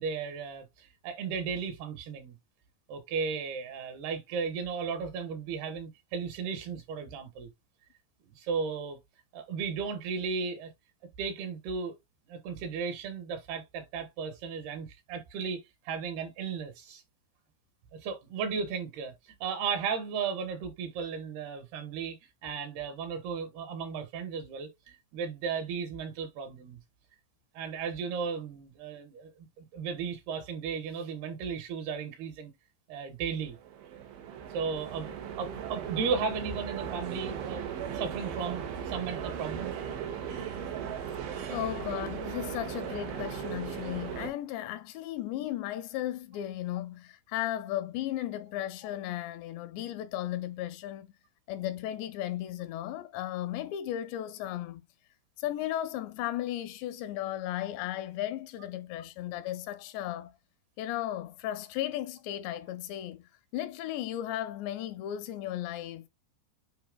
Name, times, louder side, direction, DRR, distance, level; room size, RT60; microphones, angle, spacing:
voice 1, 0.0-2.4 2.9-7.5 8.3-9.0 9.3-10.7 11.2-12.0 12.3-17.0 17.9-26.8 27.5-29.3 29.6-32.5 32.9-33.6 34.5-39.8, right 5 dB, 70° right, 2.9 m, -35 dB
sound 1, 33.4-44.3, right 8 dB, 90° right, 4.0 m, -37 dB
voice 2, 41.5-51.1 51.5-54.8 55.4-60.3 60.8-63.2 63.5-66.1, left 13 dB, 85° left, 2.6 m, -35 dB
9.4 x 4.4 x 2.3 m
omnidirectional pair, 5.2 m